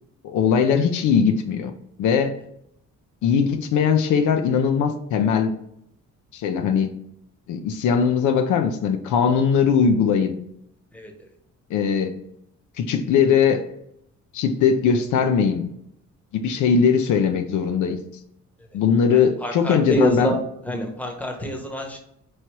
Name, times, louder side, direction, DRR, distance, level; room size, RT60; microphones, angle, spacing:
voice 1, 0.2-1.7 2.0-2.4 3.2-5.5 6.3-6.9 7.5-10.4 11.7-12.1 12.8-13.7 14.3-15.7 16.3-18.0 18.7-20.4, left 6 dB, 75° left, 6 dB, 0.5 m, -20 dB
voice 2, 19.4-20.3 20.7-22.0, equal, 5° left, 2 dB, 0.9 m, -25 dB
3.1 x 2.8 x 4.5 m, 0.74 s
cardioid pair, 90°, 30 cm